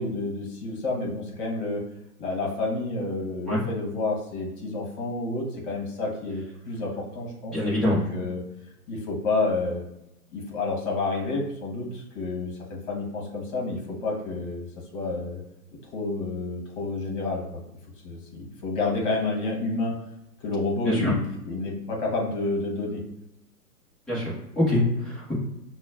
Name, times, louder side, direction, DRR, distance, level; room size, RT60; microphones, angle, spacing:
voice 1, 0.0-1.8 2.2-8.4 8.9-9.8 10.3-14.7 14.9-15.4 15.8-17.4 18.0-19.9 20.4-23.0, left 3 dB, 35° left, -2 dB, 1.2 m, -29 dB
voice 2, 7.5-8.0 20.8-21.1 24.1-25.3, left 1 dB, ahead, -9 dB, 0.7 m, -24 dB
5.9 x 2.2 x 2.4 m, 0.86 s
figure-of-eight pair, 125°, 47 cm